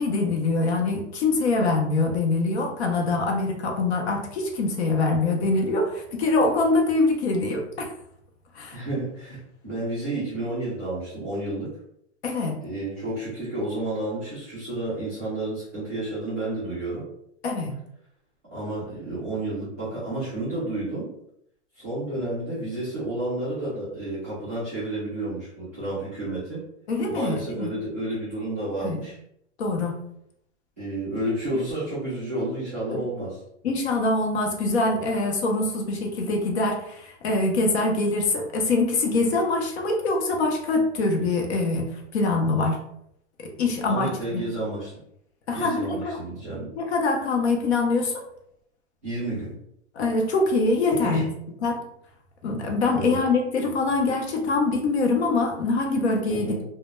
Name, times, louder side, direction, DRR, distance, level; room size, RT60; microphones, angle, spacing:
voice 1, 0.0-7.9 8.6-8.8 12.2-12.5 17.4-17.8 26.9-27.7 28.8-29.0 29.6-30.0 32.9-33.0 33.6-41.8 42.1-42.8 43.4-44.4 45.5-46.2 46.8-48.1 50.0-51.2 51.6-51.8 52.4-56.6, left 3 dB, 60° left, 2 dB, 0.7 m, -24 dB
voice 2, 8.7-11.8 12.6-17.0 18.5-21.1 21.7-26.6 27.1-29.1 30.8-33.4 43.7-44.9 45.5-46.7 49.0-49.5 50.9-51.3 52.9-53.2 56.3-56.6, right 2 dB, 15° right, -14 dB, 0.3 m, -31 dB
2.1 x 2.1 x 3.0 m, 0.74 s
hypercardioid pair, 170°, 36 cm